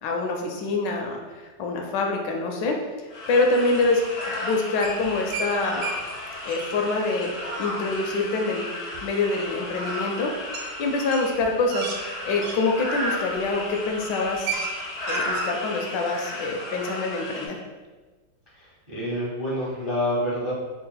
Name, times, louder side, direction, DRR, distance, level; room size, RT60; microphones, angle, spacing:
voice 1, 0.0-2.8 3.3-4.0 4.4-5.8 6.5-7.3 7.6-8.7 9.0-10.4 10.8-11.9 12.2-14.5 15.1-17.6, left 3 dB, 80° left, 2 dB, 1.2 m, -25 dB
sound 1, 3.1-17.5, left 1 dB, 60° left, 0.6 m, -34 dB
sound 2, 4.8-5.5 5.8-6.0 6.3-6.7 8.9-9.0 10.5-10.7 11.0-12.6 13.3-13.5 13.9-14.0 14.2-14.7 15.0-15.5, right 4 dB, 80° right, 1.3 m, -32 dB
voice 2, 18.5-20.5, equal, 30° right, -8 dB, 0.5 m, -28 dB
3.4 x 2.4 x 3.8 m, 1.3 s
omnidirectional pair, 2.0 m